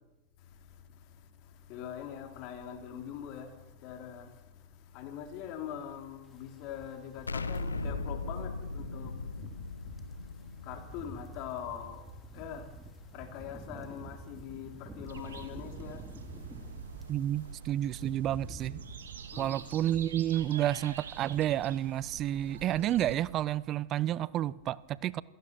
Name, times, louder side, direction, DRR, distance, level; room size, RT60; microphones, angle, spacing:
voice 1, 1.7-3.5 3.8-4.3 4.9-9.2 10.6-12.1 12.3-12.7 13.1-16.0 19.3-19.6, left 9 dB, 50° left, 3.5 m, -42 dB
sound 1, 6.3-17.3 17.6-21.0 21.3-21.5 21.9-22.7 22.9-23.1, right 2 dB, 10° right, 2.8 m, -49 dB
Explosion, 7.3-12.1, left 3 dB, 85° left, 1.0 m, -38 dB
sound 2, 15.1-23.2, right 7 dB, 75° right, 2.2 m, -46 dB
voice 2, 17.1-18.8 19.4-25.2, right 12 dB, 35° right, 0.7 m, -30 dB
28.0 x 17.5 x 6.1 m
figure-of-eight pair, 95°, 0 cm